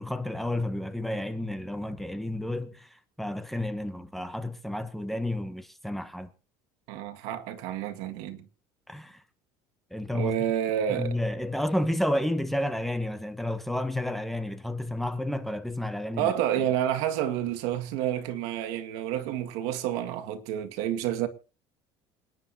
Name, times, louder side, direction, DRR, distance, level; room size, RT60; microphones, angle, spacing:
voice 1, 0.0-6.3 8.9-9.2 9.9-10.4 10.9-16.3, left 1 dB, ahead, 1.2 m, -31 dB
voice 2, 6.9-8.4 10.1-11.2 16.2-21.3, right 11 dB, 80° right, 1.9 m, -29 dB
28.0 x 10.0 x 2.8 m
cardioid pair, 145°, 11 cm